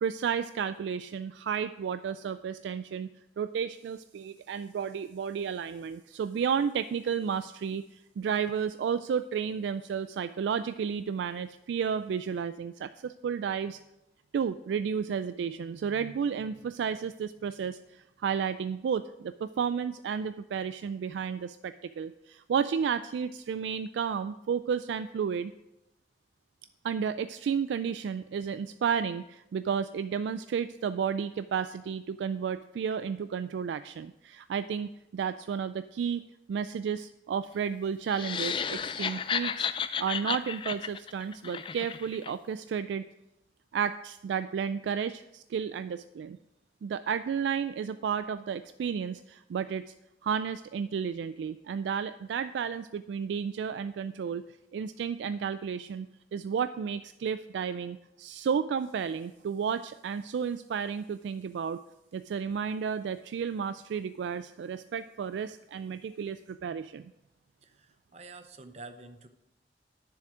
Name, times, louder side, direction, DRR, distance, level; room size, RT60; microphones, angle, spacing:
voice 1, 0.0-3.1 3.4-13.8 14.3-25.5 26.8-36.2 36.5-39.7 40.0-43.1 43.7-46.4 46.8-49.9 50.2-54.4 54.7-61.8 62.1-67.0, right 7 dB, 85° right, 12 dB, 0.3 m, -32 dB
sound 1, 38.1-42.3, left 7 dB, 30° left, 0.3 m, -33 dB
voice 2, 67.6-69.3, right 3 dB, 35° right, 9 dB, 0.7 m, -48 dB
10.0 x 7.1 x 4.9 m, 0.91 s
head